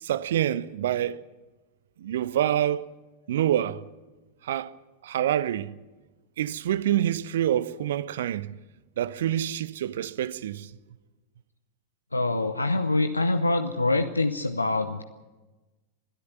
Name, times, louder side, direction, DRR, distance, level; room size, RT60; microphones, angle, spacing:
voice 1, 0.0-1.2 2.0-2.9 3.3-3.8 4.4-4.7 5.0-5.7 6.4-8.5 9.0-10.7, right 11 dB, 60° right, 0.7 m, -26 dB
voice 2, 12.1-15.0, left 2 dB, 80° left, 0.7 m, -25 dB
21.5 x 13.0 x 9.5 m
figure-of-eight pair, 90°, 0 cm